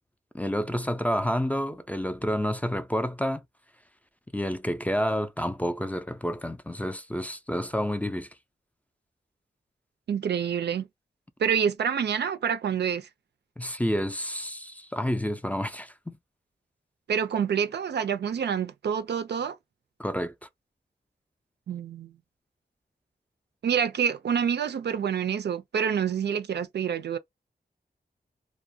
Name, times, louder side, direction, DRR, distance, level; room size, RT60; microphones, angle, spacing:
voice 1, 0.3-3.4 4.3-8.3 13.6-16.2 20.0-20.5, equal, 10° left, 0.4 m, -29 dB
voice 2, 10.1-10.9 11.4-13.1 17.1-19.6 21.7-22.1 23.6-27.2, right 7 dB, 80° right, 0.4 m, -27 dB
2.3 x 2.1 x 2.6 m
wide cardioid pair, 70°, 17 cm